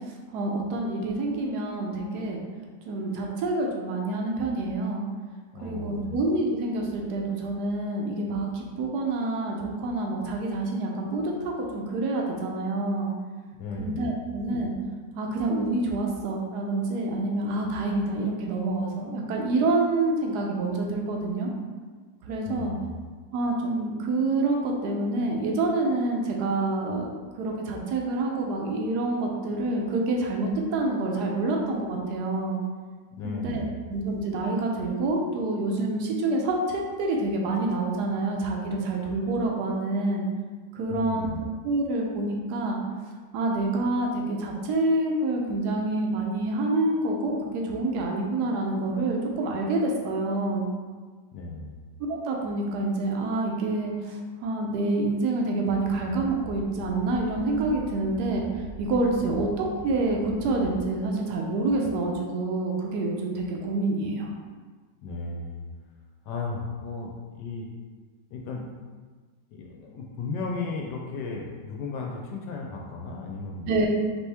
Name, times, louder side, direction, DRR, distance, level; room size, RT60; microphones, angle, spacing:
voice 1, 0.3-2.4 2.9-5.0 5.6-13.1 13.8-14.7 15.2-21.5 22.2-22.7 23.3-32.6 33.2-33.6 33.9-40.2 40.7-41.3 41.6-42.8 43.3-50.6 52.1-58.4 58.8-64.3 73.7-73.9, right 2 dB, 65° right, 0 dB, 1.2 m, -27 dB
voice 2, 5.5-6.2 13.6-14.1 22.4-23.0 33.1-33.7 40.9-41.5 51.3-51.8 59.2-59.4 65.0-65.7 66.2-67.7 68.3-68.6 69.5-73.7, left 3 dB, 70° left, 0 dB, 1.1 m, -35 dB
sound 1, 55.8-60.8, right 1 dB, 15° right, 0.4 m, -42 dB
4.3 x 2.9 x 3.4 m, 1.5 s
omnidirectional pair, 2.0 m